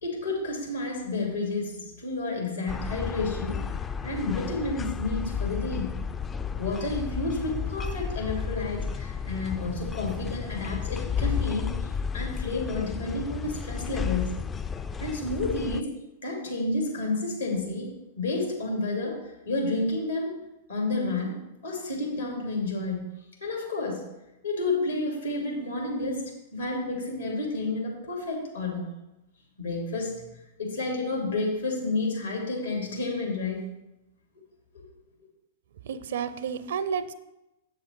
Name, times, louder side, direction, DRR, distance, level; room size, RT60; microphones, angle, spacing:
voice 1, 0.0-3.7 4.0-6.0 6.6-14.3 15.0-15.9 16.2-19.2 19.5-20.4 20.7-21.4 21.6-23.1 23.4-24.0 24.4-28.9 29.6-30.1 30.6-33.6 34.7-34.8, left 2 dB, 85° left, -1 dB, 2.7 m, -30 dB
sound 1, 2.7-15.8, left 7 dB, 20° left, 0.3 m, -32 dB
voice 2, 35.8-37.1, right 7 dB, 65° right, 13 dB, 0.5 m, -31 dB
7.2 x 6.9 x 4.5 m, 0.93 s
figure-of-eight pair, 100°, 0 cm